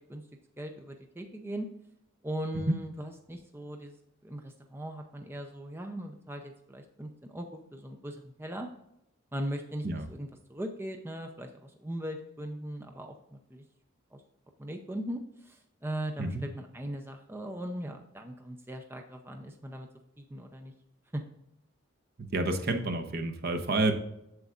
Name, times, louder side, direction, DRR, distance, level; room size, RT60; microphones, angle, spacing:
voice 1, 0.6-1.7 2.2-4.0 4.2-8.7 9.3-13.6 14.1-14.2 14.6-19.9 20.2-20.7 21.1-21.2, right 1 dB, 10° right, 4 dB, 0.6 m, -39 dB
voice 2, 22.2-23.9, right 2 dB, 50° right, 6 dB, 0.9 m, -29 dB
7.8 x 7.1 x 2.5 m, 0.82 s
head